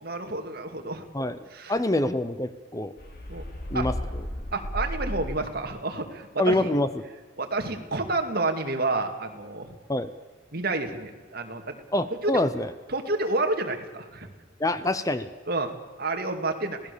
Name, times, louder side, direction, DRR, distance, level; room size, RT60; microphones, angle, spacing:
voice 1, 0.0-1.1 1.5-1.7 3.3-3.4 3.7-3.9 4.5-6.7 7.4-9.8 10.5-11.8 12.2-12.4 12.9-14.3 15.5-15.7 16.0-16.8, right 2 dB, 50° right, 5 dB, 2.4 m, -29 dB
voice 2, 1.7-2.9 3.7-3.9 6.4-7.0 9.9-10.1 11.9-12.7 14.6-15.3, left 1 dB, 15° left, 12 dB, 0.8 m, -25 dB
sound 1, 3.0-5.8, equal, 50° left, 4.0 m, -34 dB
26.5 x 17.5 x 7.0 m, 1.4 s
head